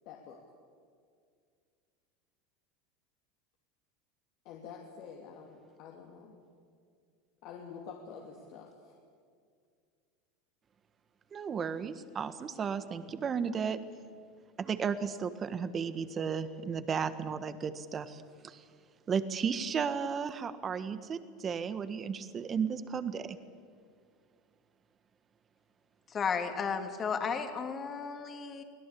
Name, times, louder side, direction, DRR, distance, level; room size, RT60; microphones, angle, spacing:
voice 1, 0.0-0.4 4.4-6.4 7.4-8.9, left 6 dB, 60° left, 0 dB, 2.8 m, -48 dB
voice 2, 11.3-13.8 14.6-18.6 19.1-23.4, right 6 dB, 30° right, 12 dB, 1.5 m, -34 dB
voice 3, 26.1-28.6, left 6 dB, 30° left, 6 dB, 2.6 m, -34 dB
24.0 x 17.0 x 8.6 m, 2.2 s
supercardioid pair, 105°, 0 cm